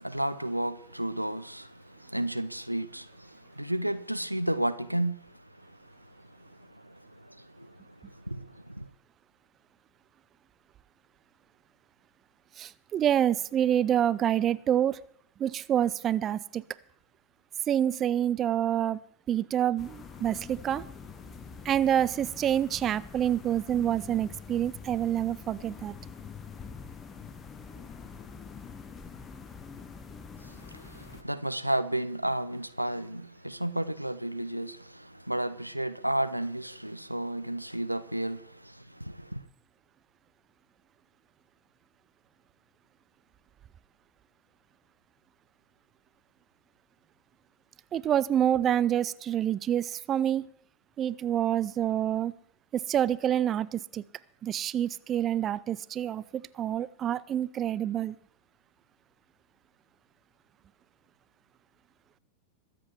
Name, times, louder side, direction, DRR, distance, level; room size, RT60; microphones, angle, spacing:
voice 1, 0.0-8.9 30.4-39.4, right 1 dB, 90° right, 0.5 m, -33 dB
voice 2, 12.6-15.0 15.4-16.6 17.7-19.0 19.3-20.8 21.6-25.9 47.9-50.5 51.0-52.3 52.7-54.0 54.4-58.1, right 10 dB, 30° right, 0.4 m, -27 dB
sound 1, 19.8-31.2, left 6 dB, 20° left, 1.1 m, -45 dB
22.5 x 7.6 x 4.5 m
figure-of-eight pair, 90°, 0 cm